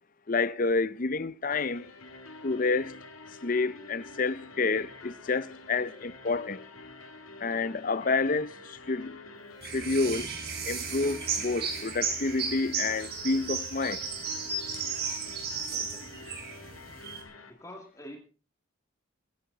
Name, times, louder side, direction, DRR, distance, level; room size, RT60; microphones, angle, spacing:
voice 1, 0.3-1.9 2.4-3.0 3.4-6.6 7.4-9.2 9.6-10.3 10.6-14.0, left 3 dB, 40° left, 0.6 m, -29 dB
sound 1, 1.5-17.5, left 2 dB, 80° left, 2.2 m, -48 dB
sound 2, 9.6-17.2, right 5 dB, 50° right, 4.2 m, -34 dB
voice 2, 15.8-16.3 17.5-18.2, equal, 15° left, 2.3 m, -47 dB
22.0 x 11.0 x 4.0 m
head